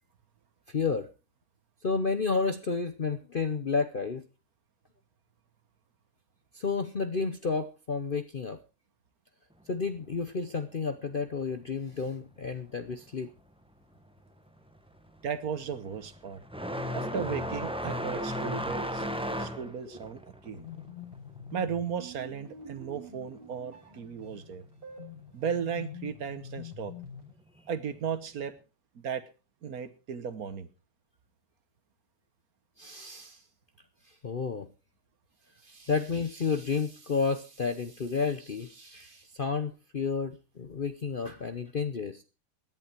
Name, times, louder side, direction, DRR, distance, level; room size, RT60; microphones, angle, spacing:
voice 1, 0.7-1.1 1.8-4.2 6.5-8.6 9.7-13.3 18.2-18.5 18.8-18.9 32.8-33.4 34.1-34.7 35.6-42.2, left 5 dB, 45° left, 9 dB, 0.7 m, -31 dB
sound 1, 13.9-14.3 14.6-22.9 23.2-24.2 25.2-25.3 26.1-26.2 28.0-28.1, equal, 5° right, 1.2 m, -36 dB
voice 2, 15.2-16.4 16.9-20.7 21.5-24.6 25.3-26.9 27.7-28.5 28.9-29.2 29.6-30.7, right 7 dB, 60° right, 13 dB, 1.4 m, -35 dB
sound 2, 20.4-27.3, left 5 dB, 30° right, 7.2 m, -45 dB
17.0 x 11.0 x 4.5 m, 0.32 s
omnidirectional pair, 1.9 m